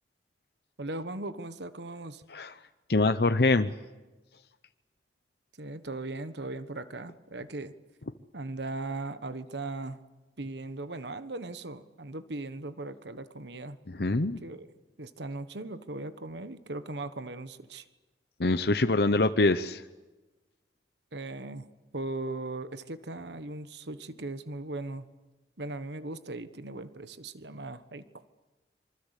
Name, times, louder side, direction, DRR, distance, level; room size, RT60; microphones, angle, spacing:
voice 1, 0.8-2.2 5.6-7.7 8.3-10.0 10.4-13.8 14.4-14.7 15.0-17.8 21.1-21.7 21.9-25.1 25.6-28.2, right 2 dB, 75° right, 12 dB, 1.3 m, -38 dB
voice 2, 2.9-3.7 13.9-14.4 18.4-19.8, left 2 dB, 60° left, 10 dB, 0.8 m, -24 dB
26.5 x 24.5 x 8.4 m, 1.2 s
head